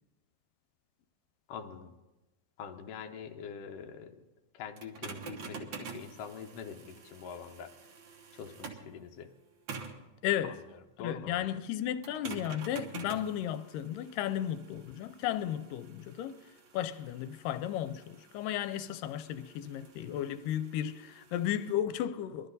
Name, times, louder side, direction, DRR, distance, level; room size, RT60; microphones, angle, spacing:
voice 1, 1.5-1.9 2.6-4.2 4.5-7.7 8.3-9.3 10.4-10.5 11.0-11.4, left 7 dB, 65° left, 1.6 m, -44 dB
sound 1, 4.8-8.9 9.7-10.1 12.0-21.7, right 5 dB, 55° right, 1.4 m, -48 dB
voice 2, 10.2-10.6 11.0-16.4 16.7-22.5, left 11 dB, 85° left, 2.2 m, -34 dB
21.0 x 12.5 x 4.0 m
omnidirectional pair, 3.8 m